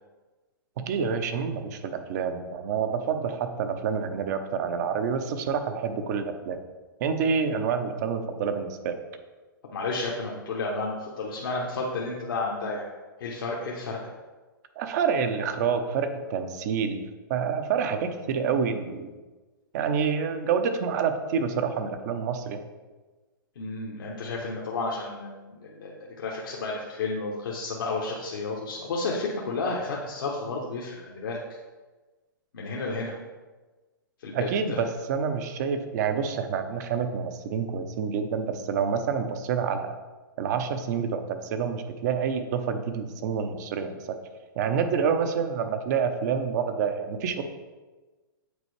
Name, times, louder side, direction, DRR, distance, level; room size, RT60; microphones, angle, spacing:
voice 1, 0.8-6.6 7.0-8.9 14.8-17.0 17.3-19.1 19.7-22.6 34.3-39.9 40.4-44.2 44.6-47.4, right 6 dB, 50° right, 7 dB, 0.7 m, -28 dB
voice 2, 9.7-12.9 13.2-14.0 23.6-31.4 32.5-33.2 34.2-34.8, left 3 dB, 70° left, -3 dB, 1.0 m, -32 dB
8.3 x 4.2 x 3.2 m, 1.3 s
hypercardioid pair, 120°, 12 cm